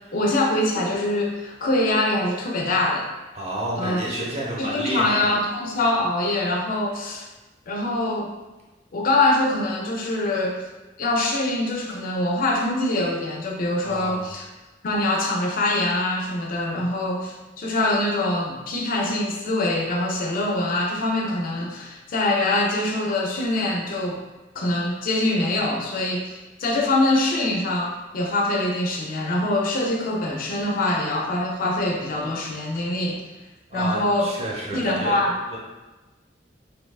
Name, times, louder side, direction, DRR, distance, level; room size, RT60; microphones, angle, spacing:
voice 1, 0.1-3.1 3.8-4.0 4.6-7.3 7.7-8.3 8.9-10.6 11.0-14.5 14.8-24.2 24.6-33.2 33.7-34.3 34.7-35.3, left 2 dB, 50° left, 0 dB, 0.4 m, -24 dB
voice 2, 3.3-5.2 13.8-14.3 33.7-35.2 35.5-35.6, right 1 dB, 35° right, -4 dB, 0.7 m, -30 dB
2.8 x 2.2 x 2.3 m, 1.1 s
head